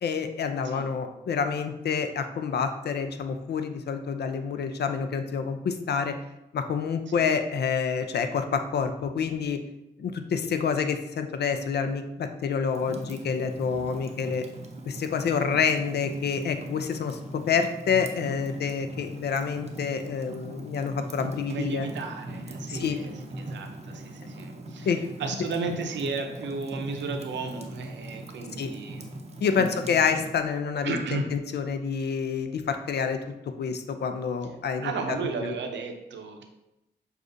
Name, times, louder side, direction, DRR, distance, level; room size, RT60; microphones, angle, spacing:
voice 1, 0.0-6.1 6.5-9.6 10.0-14.5 14.9-21.9 22.7-23.0 24.9-25.0 28.6-28.7 29.4-33.2 33.6-34.9 35.4-35.5, left 6 dB, 65° left, 8 dB, 0.4 m, -28 dB
Fire, 12.7-30.3, right 1 dB, 35° right, 0.6 m, -40 dB
voice 2, 21.5-24.9 25.2-29.1 29.5-29.9 30.8-31.3 34.8-36.4, right 4 dB, 85° right, 4 dB, 0.6 m, -34 dB
6.3 x 2.4 x 2.6 m, 0.93 s
cardioid pair, 65°, 18 cm